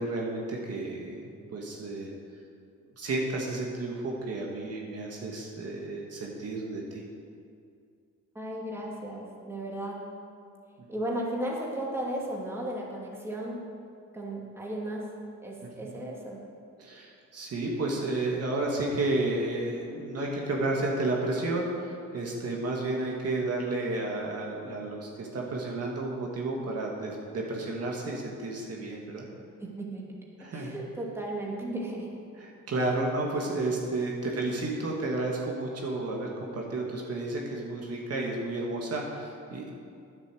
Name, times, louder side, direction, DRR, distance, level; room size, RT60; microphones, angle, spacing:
voice 1, 0.0-2.1 3.0-7.0 15.8-16.0 16.8-29.3 30.4-30.8 32.4-39.7, right 2 dB, 55° right, -2 dB, 2.1 m, -32 dB
voice 2, 8.3-10.0 10.9-13.6 14.1-15.1 15.4-16.4 29.2-29.3 29.6-30.1 30.5-32.1 34.3-34.4, right 1 dB, 10° right, -4 dB, 2.7 m, -35 dB
9.7 x 8.1 x 7.8 m, 2.4 s
cardioid pair, 90°, 30 cm